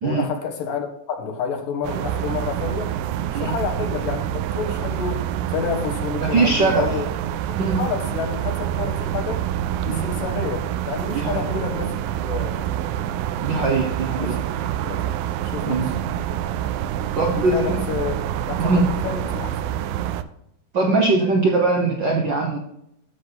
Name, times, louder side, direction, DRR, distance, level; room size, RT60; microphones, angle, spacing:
voice 1, 0.0-2.9 3.3-7.0 7.5-9.5 9.9-11.9 12.2-12.7 14.2-14.5 14.8-15.9 17.3-18.1 18.5-19.5, left 6 dB, 75° left, 5 dB, 3.0 m, -29 dB
sound 1, 1.8-20.2, right 11 dB, 90° right, 2.3 m, -27 dB
voice 2, 6.2-6.9 7.5-7.8 9.9-10.1 11.1-11.5 13.4-14.4 15.6-15.9 17.1-17.8 18.6-18.9 20.7-22.6, right 3 dB, 70° right, 1 dB, 1.0 m, -21 dB
12.0 x 7.6 x 4.0 m, 0.76 s
omnidirectional pair, 3.9 m